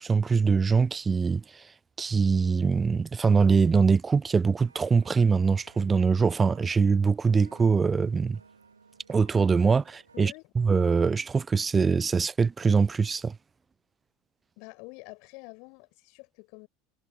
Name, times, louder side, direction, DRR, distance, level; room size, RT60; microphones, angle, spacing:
voice 1, 0.0-1.7 2.0-8.4 9.1-13.4, right 5 dB, 20° right, 0.4 m, -23 dB
sound 1, 4.6-10.2, right 5 dB, 80° right, 3.1 m, -58 dB
voice 2, 14.6-16.7, left 32 dB, 55° left, 4.8 m, -47 dB
figure-of-eight pair, 75°, 0 cm